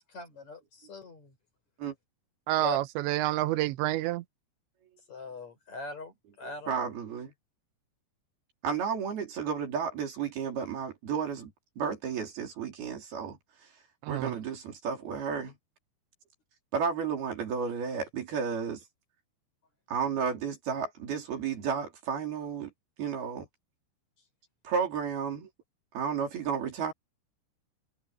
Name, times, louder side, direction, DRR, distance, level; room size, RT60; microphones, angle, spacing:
voice 1, 0.0-1.3 2.6-2.8 5.1-6.7, left 3 dB, 40° left, 6.7 m, -41 dB
voice 2, 2.5-4.2 14.0-14.3, right 15 dB, 85° right, 3.1 m, -28 dB
voice 3, 6.4-7.3 8.6-11.5 11.8-13.4 14.1-15.5 16.7-18.8 19.9-22.7 23.0-23.5 24.7-25.5 25.9-26.9, right 6 dB, 60° right, 5.4 m, -32 dB
omnidirectional pair, 5.1 m